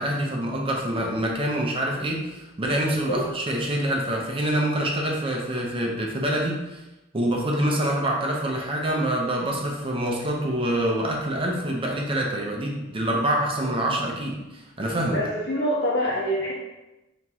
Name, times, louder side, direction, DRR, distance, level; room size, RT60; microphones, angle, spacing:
voice 1, 0.0-6.8 7.1-15.2, right 1 dB, 25° right, -1 dB, 0.6 m, -26 dB
voice 2, 15.1-16.5, equal, 60° left, -3 dB, 1.1 m, -25 dB
4.4 x 3.0 x 3.5 m, 1.0 s
head